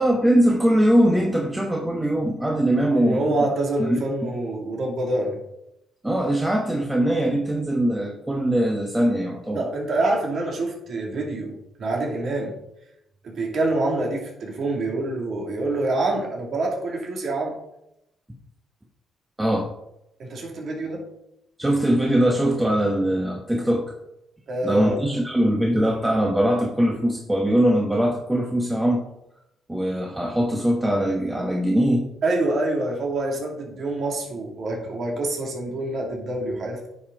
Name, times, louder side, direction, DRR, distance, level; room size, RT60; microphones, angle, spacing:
voice 1, 0.0-3.4 3.8-4.3 6.0-9.7 19.4-19.7 21.6-23.9 24.6-29.0 29.7-32.1, right 1 dB, 10° right, 0 dB, 1.1 m, -21 dB
voice 2, 2.6-5.4 9.5-12.6 13.2-17.5 20.2-21.0 24.5-25.0 32.2-36.9, right 2 dB, 60° right, -1 dB, 2.4 m, -26 dB
9.6 x 5.7 x 3.8 m, 0.84 s
cardioid pair, 90°, 0 cm